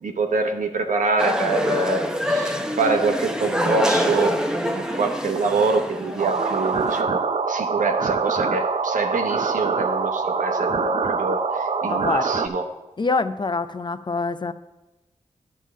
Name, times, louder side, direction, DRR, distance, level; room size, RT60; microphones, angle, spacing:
voice 1, 0.0-4.4 4.7-7.2 7.5-12.7, right 3 dB, 80° right, 5 dB, 1.0 m, -25 dB
sound 1, 1.2-7.0, equal, 5° right, 0.8 m, -25 dB
sound 2, 6.2-12.5, right 4 dB, 50° right, 0.5 m, -24 dB
voice 2, 11.9-12.3 13.0-14.5, left 3 dB, 35° left, 12 dB, 0.4 m, -25 dB
10.0 x 3.7 x 7.3 m, 1.0 s
cardioid pair, 65°, 13 cm